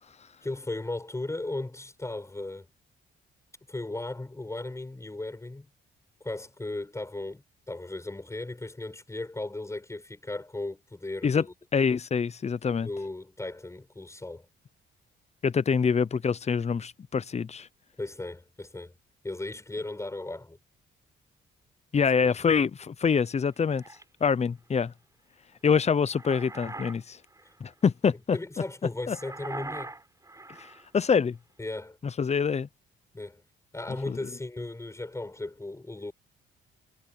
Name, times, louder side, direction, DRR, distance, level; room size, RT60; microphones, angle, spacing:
voice 1, 0.4-2.7 3.7-5.7 6.2-11.4 12.8-14.5 18.0-18.9 19.2-20.6 28.3-30.0 31.6-32.0 33.1-33.4 33.7-36.1, left 2 dB, 15° left, 7.5 m, -36 dB
voice 2, 11.7-12.9 15.4-17.7 21.9-23.8 24.2-24.9 25.6-27.2 27.6-28.4 29.1-29.2 30.6-31.4 32.0-32.7 34.1-34.2, left 6 dB, 35° left, 0.8 m, -25 dB
sound 1, 23.1-24.0 25.8-27.0 27.3-27.6 29.1-30.9, right 2 dB, 15° right, 6.0 m, -42 dB
cardioid pair, 90°, 20 cm